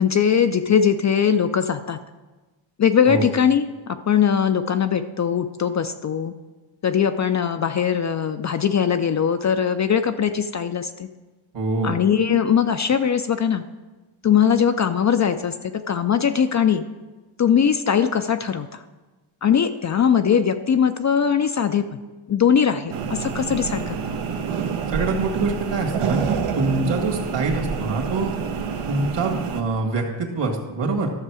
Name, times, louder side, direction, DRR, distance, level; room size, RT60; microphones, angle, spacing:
voice 1, 0.0-2.0 2.8-6.3 6.8-11.1 11.8-13.6 14.2-16.8 17.4-18.8 19.4-21.9 22.3-24.2, left 7 dB, 40° left, 9 dB, 0.4 m, -20 dB
voice 2, 11.5-12.0 24.9-28.3 28.9-31.1, right 3 dB, 60° right, 1 dB, 2.0 m, -25 dB
sound 1, 22.9-29.6, right 6 dB, 85° right, 1.0 m, -27 dB
13.0 x 6.5 x 4.8 m, 1.2 s
cardioid pair, 110°, 49 cm